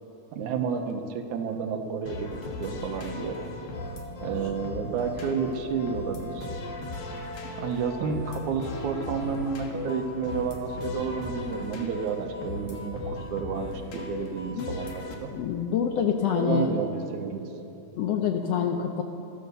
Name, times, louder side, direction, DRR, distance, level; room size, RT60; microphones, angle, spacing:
voice 1, 0.3-3.4 4.2-6.5 7.6-15.3 16.3-17.5, right 6 dB, 75° right, 5 dB, 2.4 m, -31 dB
sound 1, 2.1-15.1, left 2 dB, 55° left, 2.2 m, -37 dB
voice 2, 15.3-16.8 18.0-19.0, left 8 dB, 75° left, 4 dB, 1.5 m, -26 dB
13.5 x 13.0 x 6.8 m, 2.8 s
omnidirectional pair, 3.5 m